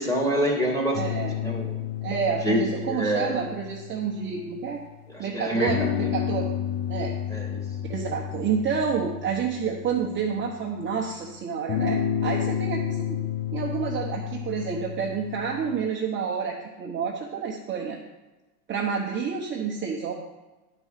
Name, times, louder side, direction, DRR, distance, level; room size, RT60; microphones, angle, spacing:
voice 1, 0.0-1.7 2.4-3.4 5.1-6.1 7.3-7.6, equal, 5° left, -1 dB, 2.1 m, -27 dB
sound 1, 0.9-4.9 5.6-10.7 11.7-15.9, left 9 dB, 40° left, 0.5 m, -31 dB
voice 2, 0.9-1.4 2.0-4.8 5.2-6.5 6.9-7.1 7.8-13.2 13.5-18.0 18.7-20.1, right 6 dB, 25° right, -2 dB, 1.0 m, -29 dB
10.0 x 4.7 x 5.7 m, 1.1 s
supercardioid pair, 120°, 48 cm